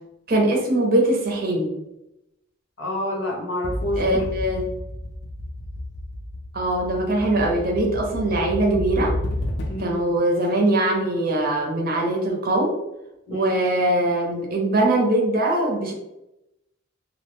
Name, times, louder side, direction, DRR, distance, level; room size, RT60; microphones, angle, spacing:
voice 1, 0.3-1.7 4.0-4.6 6.5-9.1 9.8-12.7 13.3-15.9, right 1 dB, 45° right, 0 dB, 0.6 m, -22 dB
voice 2, 2.8-4.3 9.7-9.9 13.3-13.5, left 1 dB, 75° left, -1 dB, 0.8 m, -28 dB
sound 1, 3.6-10.0, left 1 dB, 55° left, 0.4 m, -31 dB
2.3 x 2.1 x 3.1 m, 0.91 s
head